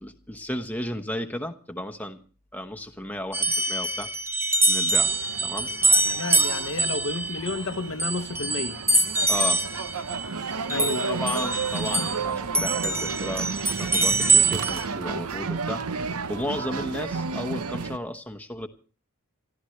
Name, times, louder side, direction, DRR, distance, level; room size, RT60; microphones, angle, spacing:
voice 1, 0.0-2.2 2.5-4.1 4.7-5.1 5.4-5.7 6.5-6.6 9.3-9.6 10.8-18.7, left 1 dB, 5° left, 1.0 m, -34 dB
sound 1, 3.3-12.2 12.5-14.8, right 2 dB, 10° right, 0.7 m, -24 dB
sound 2, 4.9-18.0, right 4 dB, 75° right, 0.8 m, -32 dB
voice 2, 6.1-8.8 10.7-11.2, left 3 dB, 60° left, 0.9 m, -31 dB
27.5 x 12.5 x 3.2 m
head